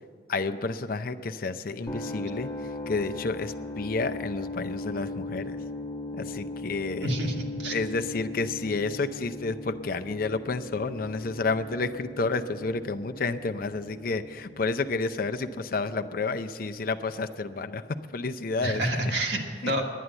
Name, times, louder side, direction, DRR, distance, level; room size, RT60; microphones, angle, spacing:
voice 1, 0.3-5.6 6.1-7.1 7.7-17.8 18.1-18.8 19.6-19.7, left 3 dB, 55° left, 9 dB, 0.6 m, -30 dB
sound 1, 1.9-17.8, left 2 dB, 20° left, 1.1 m, -39 dB
voice 2, 7.0-7.8 18.6-19.8, right 1 dB, 75° right, 1 dB, 1.8 m, -28 dB
11.0 x 10.0 x 7.8 m, 2.2 s
head